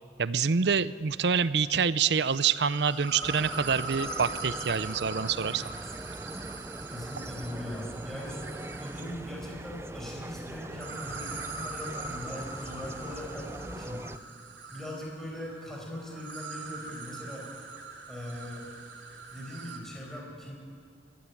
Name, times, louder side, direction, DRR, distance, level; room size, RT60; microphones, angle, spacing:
voice 1, 0.2-5.7, right 6 dB, 65° right, 16 dB, 0.6 m, -26 dB
sound 1, 2.1-9.3 10.7-19.8, right 3 dB, 85° right, 2.9 m, -42 dB
sound 2, 3.2-14.2, right 1 dB, 15° right, 0.5 m, -41 dB
voice 2, 6.9-8.5 8.8-14.1 14.7-17.4 18.1-18.7 19.3-20.6, left 1 dB, ahead, -3 dB, 5.5 m, -40 dB
23.5 x 15.5 x 9.9 m, 2.3 s
head